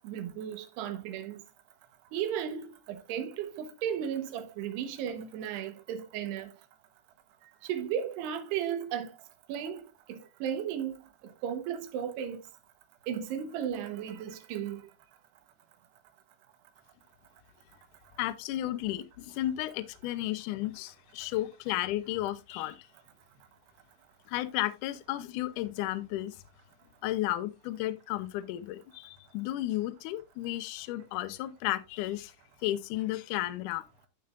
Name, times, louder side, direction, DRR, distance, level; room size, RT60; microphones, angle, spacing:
voice 1, 0.0-1.4 2.1-6.5 7.6-9.1 9.5-11.0 11.2-12.4 13.1-14.8, right 9 dB, 80° right, 3.4 m, -35 dB
voice 2, 18.2-22.9 24.3-26.4 27.0-32.3 32.6-33.8, left 15 dB, 90° left, 1.8 m, -33 dB
13.5 x 6.9 x 2.5 m
omnidirectional pair, 4.7 m